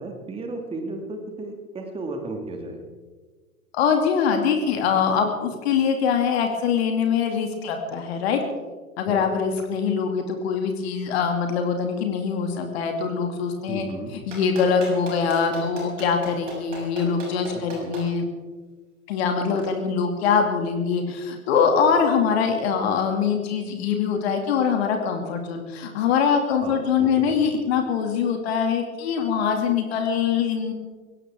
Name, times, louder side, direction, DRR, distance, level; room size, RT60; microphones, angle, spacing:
voice 1, 0.0-2.8 9.1-9.3 13.7-14.1 17.5-17.9 26.6-27.3, right 2 dB, 15° right, 4 dB, 1.9 m, -34 dB
voice 2, 3.7-8.4 9.0-13.8 14.3-18.3 19.1-30.7, left 6 dB, 45° left, 4 dB, 2.4 m, -23 dB
Clapping, 14.3-18.0 19.6-19.7, right 3 dB, 60° right, 7.1 m, -36 dB
22.0 x 18.0 x 3.5 m, 1.4 s
figure-of-eight pair, 100°, 42 cm